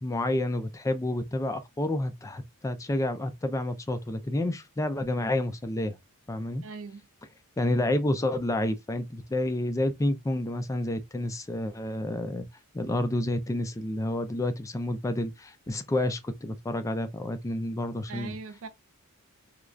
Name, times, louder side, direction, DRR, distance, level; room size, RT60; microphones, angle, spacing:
voice 1, 0.0-5.9 6.3-6.6 7.6-12.5 12.7-18.4, left 1 dB, 15° left, 0.3 m, -29 dB
voice 2, 6.6-7.0 18.1-18.7, right 4 dB, 65° right, 0.5 m, -40 dB
3.1 x 2.3 x 2.4 m
head